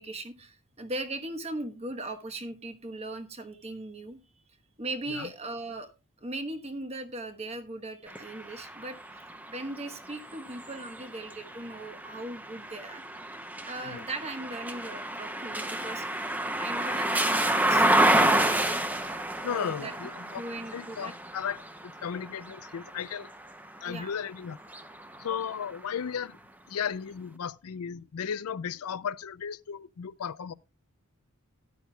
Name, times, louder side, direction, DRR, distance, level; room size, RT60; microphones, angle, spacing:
voice 1, 0.0-4.2 4.8-5.9 6.2-9.0 9.5-13.0 13.7-16.2 16.6-18.9 19.5-21.1 23.8-24.1, right 2 dB, 30° right, 1.1 m, -39 dB
sound 1, 8.1-24.0 24.6-25.8, right 1 dB, 5° right, 0.6 m, -30 dB
voice 2, 19.4-23.3 23.8-24.6 25.2-26.4 26.7-30.5, left 7 dB, 85° left, 0.5 m, -35 dB
12.5 x 10.5 x 2.3 m
head